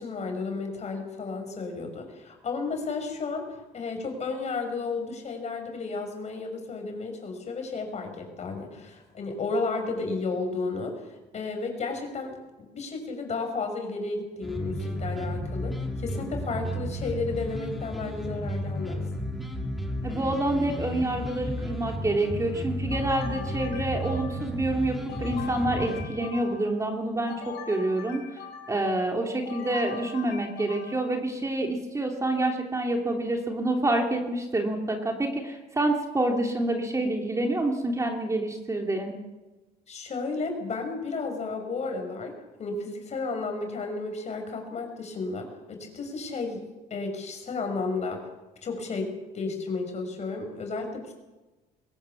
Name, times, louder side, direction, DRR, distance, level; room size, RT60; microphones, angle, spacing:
voice 1, 0.0-19.1 39.9-46.6 46.9-48.2 48.6-51.1, left 3 dB, 40° left, 4 dB, 6.3 m, -33 dB
sound 1, 14.4-26.1, equal, ahead, 3.8 m, -33 dB
voice 2, 20.0-28.2 28.7-39.1, right 2 dB, 20° right, 2 dB, 3.0 m, -27 dB
sound 2, 22.9-24.6 25.1-26.8 27.3-28.9 29.4-31.2, left 7 dB, 90° left, 5.7 m, -42 dB
22.0 x 18.0 x 7.2 m, 1.1 s
cardioid pair, 110°, 17 cm